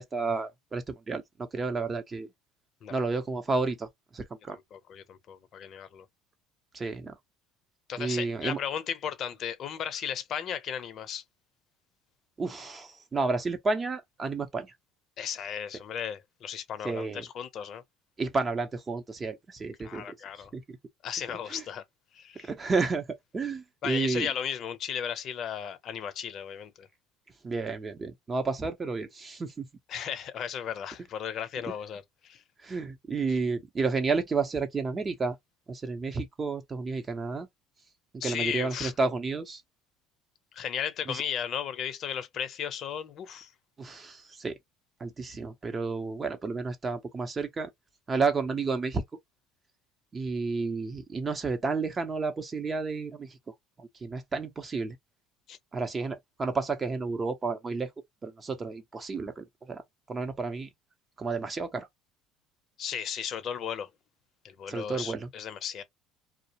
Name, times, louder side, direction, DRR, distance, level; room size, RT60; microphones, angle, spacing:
voice 1, 0.0-2.3 2.9-3.9 4.1-4.6 6.7-7.2 8.0-8.6 12.4-14.7 16.8-17.3 18.2-20.2 20.5-20.8 21.5-21.6 22.4-24.3 27.4-29.7 32.6-35.4 35.7-37.5 38.2-39.6 41.1-41.2 43.8-44.6 45.0-47.7 48.1-49.0 50.1-55.0 55.7-57.9 58.2-59.8 60.1-60.7 61.2-61.9 64.7-65.3, right 4 dB, 25° right, 0.7 m, -31 dB
voice 2, 4.5-6.0 7.9-11.2 15.2-17.8 19.8-20.5 21.0-21.8 22.1-22.5 23.8-26.9 29.9-32.4 33.3-33.4 38.2-38.9 40.5-43.5 55.5-55.6 62.8-63.9 64.4-65.8, left 8 dB, 50° left, 0.6 m, -35 dB
2.4 x 2.0 x 2.8 m
supercardioid pair, 110°, 0 cm